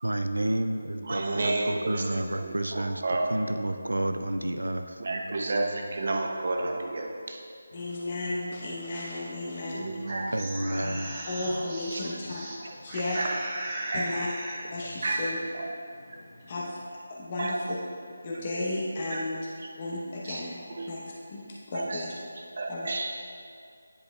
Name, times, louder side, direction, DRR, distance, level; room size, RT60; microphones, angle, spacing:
voice 1, 0.0-3.0 3.3-5.0 10.3-11.1, right 1 dB, 85° right, 7 dB, 0.3 m, -30 dB
voice 2, 1.0-3.4 5.0-7.4 9.7-10.4 11.9-12.1 12.6-12.7 13.1-13.5 13.9-14.2 15.0-15.7 17.4-17.7 18.5-18.7 19.1-19.2 20.2-20.9 21.7-22.1 22.6-23.1, right 2 dB, 55° right, 2 dB, 0.7 m, -31 dB
sound 1, 7.7-16.9, left 1 dB, 70° left, 0.8 m, -49 dB
voice 3, 7.7-10.4 11.2-12.4 12.8-13.2 13.9-14.3 14.7-15.4 16.5-16.8 17.1-17.8 18.2-19.3 19.8-21.0 21.3-22.1 22.7-22.9, left 2 dB, 35° left, -5 dB, 0.8 m, -34 dB
sound 2, 10.1-12.6 12.9-14.7, right 1 dB, 25° right, 0.8 m, -37 dB
9.9 x 5.4 x 2.3 m, 2.3 s
figure-of-eight pair, 160°, 0 cm